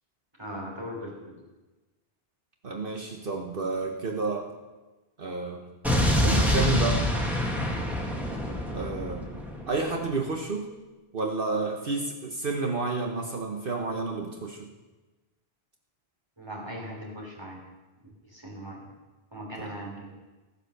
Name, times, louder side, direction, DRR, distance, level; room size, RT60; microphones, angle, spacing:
voice 1, 0.4-1.4 16.4-17.6 18.2-18.9 19.3-20.2, equal, 25° right, -2 dB, 3.7 m, -39 dB
voice 2, 2.6-4.5 5.2-5.6 6.2-7.1 8.7-9.3 9.7-10.7 11.1-14.7 19.6-19.7, right 3 dB, 60° right, 2 dB, 1.3 m, -30 dB
Explosion, 5.8-9.9, left 1 dB, ahead, 2.0 m, -26 dB
15.0 x 10.0 x 6.6 m, 1.2 s
omnidirectional pair, 1.1 m